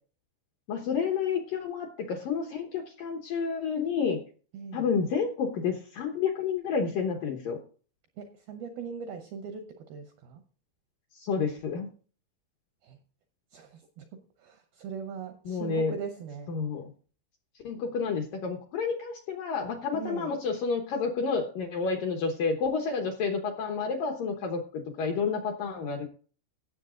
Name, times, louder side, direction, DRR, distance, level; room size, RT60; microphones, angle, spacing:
voice 1, 0.7-4.2 4.7-7.6 11.1-11.9 15.5-15.9 16.5-16.9 17.6-26.1, left 5 dB, 70° left, 2 dB, 2.1 m, -30 dB
voice 2, 4.5-4.9 8.2-10.4 12.8-13.0 13.5-16.5 19.9-20.4, right 6 dB, 80° right, 6 dB, 2.1 m, -40 dB
16.5 x 7.1 x 3.8 m, 0.40 s
omnidirectional pair, 5.4 m